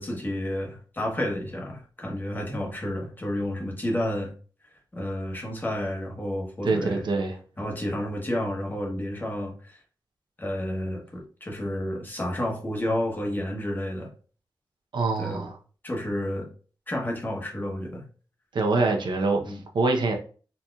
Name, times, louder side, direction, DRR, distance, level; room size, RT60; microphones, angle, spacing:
voice 1, 0.0-4.3 4.9-7.0 7.6-9.8 10.4-14.1 15.2-15.5 15.8-16.5 16.9-18.0 19.4-19.6, left 1 dB, 25° left, 1.1 m, -30 dB
voice 2, 6.6-7.3 14.9-15.6 18.5-20.1, right 3 dB, 70° right, 0.7 m, -25 dB
4.0 x 2.9 x 2.3 m
wide cardioid pair, 100°, 8 cm